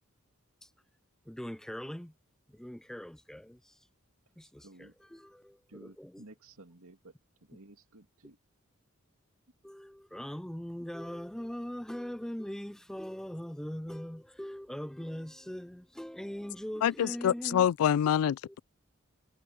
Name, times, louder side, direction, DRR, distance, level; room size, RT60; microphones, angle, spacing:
voice 1, 1.3-2.1 2.5-3.8 4.4-6.2 9.6-17.7, equal, 5° left, 0.4 m, -41 dB
voice 2, 4.4-5.2 5.7-8.4, right 2 dB, 85° right, 2.6 m, -55 dB
voice 3, 16.8-18.6, left 9 dB, 90° left, 0.3 m, -26 dB
head